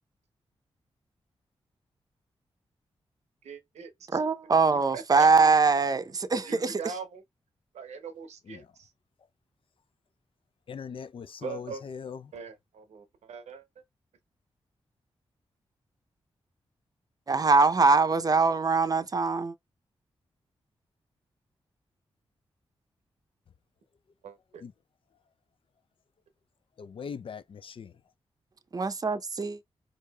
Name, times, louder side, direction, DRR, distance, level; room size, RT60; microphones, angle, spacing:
voice 1, 3.4-4.2 4.9-5.3 6.3-7.2 7.7-8.9 11.4-11.8 12.3-13.6 24.2-24.6, right 5 dB, 85° right, 0.8 m, -41 dB
voice 2, 4.1-6.8 17.3-19.5 28.7-29.6, right 4 dB, 35° right, 0.6 m, -23 dB
voice 3, 10.7-12.2 24.6-24.7 26.8-27.9, left 6 dB, 55° left, 0.3 m, -40 dB
4.7 x 2.6 x 2.2 m
cardioid pair, 45°, 11 cm